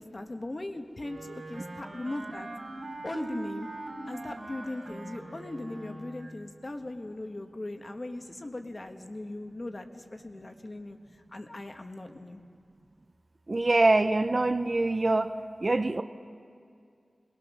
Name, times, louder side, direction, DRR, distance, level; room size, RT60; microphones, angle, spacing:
voice 1, 0.0-2.5 3.0-3.7 4.1-11.0 11.3-12.4, left 2 dB, 35° left, 6 dB, 1.2 m, -39 dB
Wind instrument woodwind instrument, 1.0-6.3, right 2 dB, 75° right, 2.9 m, -41 dB
voice 2, 13.5-15.3 15.6-16.0, right 2 dB, 40° right, 9 dB, 0.6 m, -24 dB
21.5 x 20.0 x 6.2 m, 2.4 s
wide cardioid pair, 90°, 0 cm